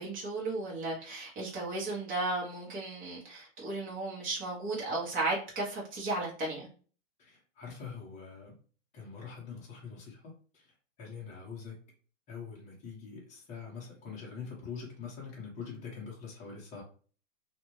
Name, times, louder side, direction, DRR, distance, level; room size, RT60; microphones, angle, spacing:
voice 1, 0.0-6.7, right 2 dB, 20° right, -5 dB, 1.1 m, -35 dB
voice 2, 7.2-8.5 8.9-10.6 11.0-11.7 12.3-16.8, left 5 dB, 20° left, -3 dB, 1.0 m, -44 dB
2.5 x 2.4 x 3.1 m, 0.40 s
hypercardioid pair, 140°, 39 cm